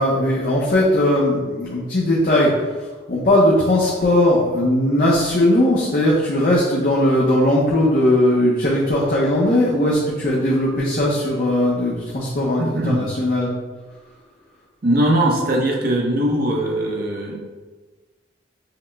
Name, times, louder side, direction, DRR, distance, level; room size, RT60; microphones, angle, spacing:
voice 1, 0.0-2.7 3.1-13.5, left 1 dB, 45° left, -5 dB, 0.6 m, -18 dB
voice 2, 12.6-13.1 14.8-17.4, right 1 dB, 50° right, 0 dB, 0.7 m, -20 dB
5.7 x 2.1 x 3.3 m, 1.3 s
head